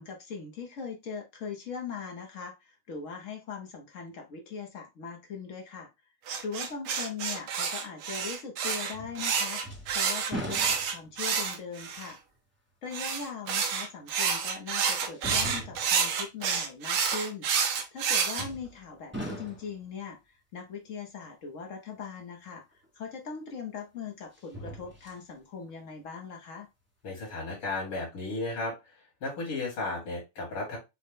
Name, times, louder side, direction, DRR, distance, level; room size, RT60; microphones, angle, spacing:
voice 1, 0.0-5.9 6.4-9.6 9.9-12.2 12.8-17.5 17.9-26.7, left 5 dB, 55° left, 0.9 m, -40 dB
sound 1, 6.3-12.1 12.9-18.4, right 6 dB, 80° right, 1.7 m, -29 dB
sound 2, 8.9-9.3 9.6-11.2 11.8-11.9 13.8-13.9 15.1-16.0 18.4-18.8 19.1-19.8 22.8-22.9 24.3-25.2 25.7-25.8, right 1 dB, 15° right, 0.5 m, -39 dB
voice 2, 27.0-28.7 29.2-30.8, left 2 dB, 75° left, 3.1 m, -34 dB
6.4 x 2.2 x 3.6 m
omnidirectional pair, 2.4 m